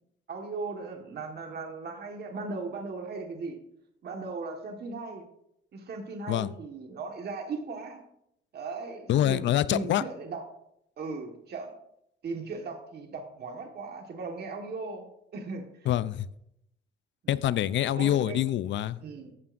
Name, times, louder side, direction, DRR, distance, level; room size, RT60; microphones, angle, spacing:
voice 1, 0.3-3.6 4.0-5.2 5.7-8.0 8.5-10.4 11.0-11.7 12.2-15.1 15.3-15.9 17.2-17.5 17.9-18.4 19.0-19.3, right 3 dB, 55° right, 2 dB, 1.6 m, -37 dB
voice 2, 9.1-10.0 15.9-16.3 17.3-19.0, left 12 dB, 70° left, 16 dB, 0.5 m, -25 dB
14.0 x 8.5 x 2.6 m, 0.77 s
cardioid pair, 90°, 20 cm